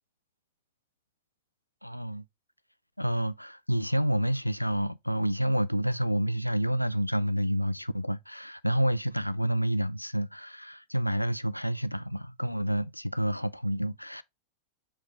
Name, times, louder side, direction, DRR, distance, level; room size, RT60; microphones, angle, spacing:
voice 1, 1.8-2.2 3.0-14.2, equal, 90° left, 0.4 m, -29 dB
7.1 x 4.9 x 3.3 m
figure-of-eight pair, 90°, 0 cm